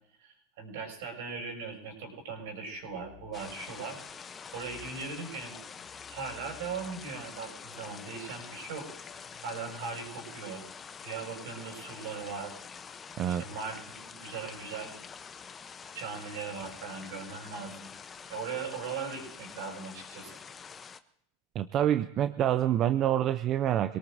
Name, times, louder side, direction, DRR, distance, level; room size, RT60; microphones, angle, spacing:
voice 1, 0.2-4.2 4.5-5.6 6.1-8.9 9.4-10.6 11.0-12.6 13.3-14.9 15.9-17.9 18.3-20.4, right 5 dB, 70° right, 2 dB, 6.4 m, -39 dB
sound 1, 2.7-3.6 4.5-10.5, left 5 dB, 50° left, 1.6 m, -55 dB
sound 2, 3.3-21.0, left 6 dB, 20° left, 0.7 m, -46 dB
voice 2, 21.5-24.0, right 11 dB, 35° right, 11 dB, 0.5 m, -27 dB
25.5 x 18.5 x 2.7 m, 0.71 s
supercardioid pair, 130°, 0 cm